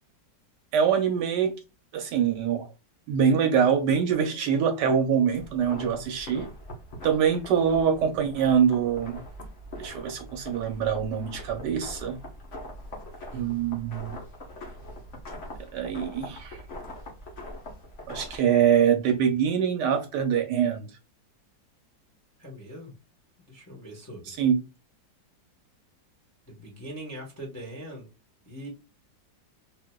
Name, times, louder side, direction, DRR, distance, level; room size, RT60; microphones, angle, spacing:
voice 1, 0.7-1.6 1.9-2.7 3.1-6.5 7.0-9.2 9.8-12.2 13.3-14.2 15.7-16.6 18.1-20.9 24.3-24.6, right 7 dB, 75° right, 1.1 m, -24 dB
sound 1, 5.3-18.4, left 1 dB, 45° left, 1.3 m, -42 dB
voice 2, 22.4-22.9 23.5-24.4 26.5-28.1 28.4-28.7, right 1 dB, 10° left, 0.7 m, -41 dB
3.8 x 2.8 x 2.2 m
omnidirectional pair, 2.1 m